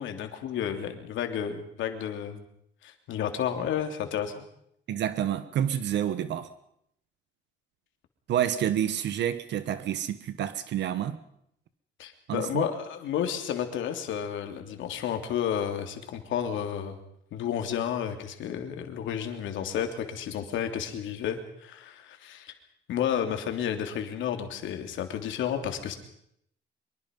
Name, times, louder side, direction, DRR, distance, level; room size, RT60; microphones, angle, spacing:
voice 1, 0.0-2.4 2.8-4.3 12.0-17.0 17.3-22.5 22.9-26.0, left 9 dB, 85° left, 6 dB, 3.2 m, -31 dB
voice 2, 4.9-6.5 8.3-11.2 12.3-12.7, right 10 dB, 65° right, 13 dB, 1.3 m, -28 dB
24.5 x 23.5 x 5.5 m, 0.74 s
cardioid pair, 175°, 19 cm